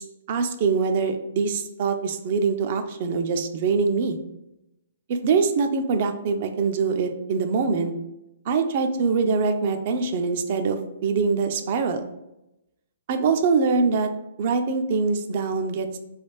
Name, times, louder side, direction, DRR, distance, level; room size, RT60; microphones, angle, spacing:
voice 1, 0.0-4.2 5.1-7.9 8.5-12.0 13.1-14.1 14.4-16.0, right 4 dB, 45° right, 7 dB, 0.4 m, -24 dB
3.2 x 2.4 x 3.1 m, 0.90 s
hypercardioid pair, 150°, 0 cm